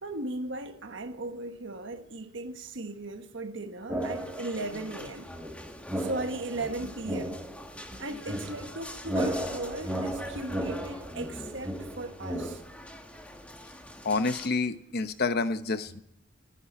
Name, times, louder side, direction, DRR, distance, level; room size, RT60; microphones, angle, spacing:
voice 1, 0.0-5.3 6.0-7.4 8.0-12.6, right 2 dB, 65° right, 1.3 m, -37 dB
sound 1, 3.9-4.7 5.3-12.6, right 1 dB, 10° right, 1.8 m, -35 dB
sound 2, 4.0-14.5, left 1 dB, 5° left, 1.6 m, -45 dB
voice 2, 14.0-16.0, left 3 dB, 50° left, 1.0 m, -28 dB
29.0 x 11.0 x 4.3 m
head